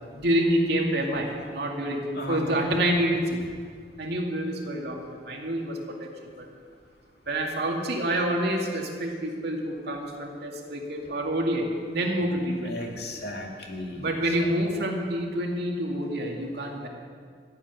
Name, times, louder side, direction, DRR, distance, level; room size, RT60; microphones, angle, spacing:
voice 1, 0.1-3.4 4.0-6.1 6.4-6.5 7.3-12.9 13.9-16.9, right 1 dB, 65° right, 0 dB, 2.3 m, -27 dB
voice 2, 2.1-2.7 12.6-14.1, left 1 dB, 65° left, 1 dB, 2.4 m, -35 dB
14.5 x 8.4 x 9.8 m, 2.1 s
head